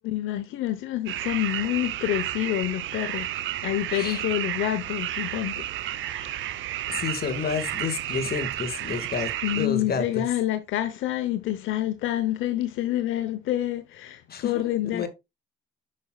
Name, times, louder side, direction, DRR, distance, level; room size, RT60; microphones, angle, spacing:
voice 1, 0.0-3.3 3.6-6.8 9.1-15.1, left 13 dB, 85° left, 0.9 m, -28 dB
sound 1, 1.1-9.7, right 13 dB, 80° right, 0.7 m, -32 dB
voice 2, 3.9-4.2 6.9-10.3 14.3-14.6 14.9-15.1, left 5 dB, 50° left, 1.7 m, -30 dB
8.4 x 6.2 x 2.3 m
cardioid pair, 90°, 20 cm